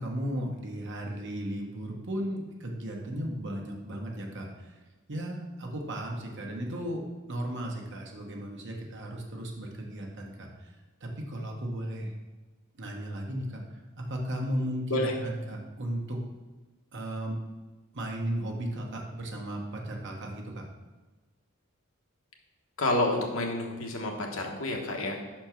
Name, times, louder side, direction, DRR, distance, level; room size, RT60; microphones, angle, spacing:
voice 1, 0.0-4.8 5.1-12.1 12.7-16.2 16.9-17.4 17.9-20.6, right 1 dB, 60° right, 0 dB, 1.2 m, -35 dB
voice 2, 22.8-25.2, left 1 dB, 70° left, 1 dB, 1.2 m, -29 dB
6.0 x 4.4 x 5.9 m, 1.2 s
head